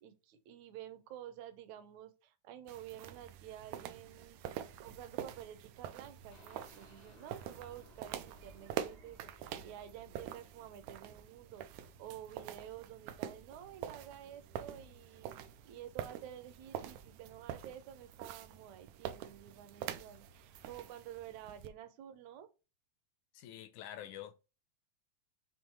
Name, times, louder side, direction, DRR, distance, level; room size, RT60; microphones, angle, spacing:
voice 1, 0.0-4.4 4.8-15.3 15.7-22.5, right 11 dB, 70° right, 1.8 m, -51 dB
sound 1, 2.7-21.7, right 10 dB, 90° right, 1.6 m, -46 dB
sound 2, 6.3-14.2 14.5-14.6 15.0-15.1, left 1 dB, 35° left, 0.6 m, -63 dB
voice 2, 23.3-24.3, left 11 dB, 80° left, 1.8 m, -47 dB
7.2 x 2.9 x 4.7 m
omnidirectional pair, 4.1 m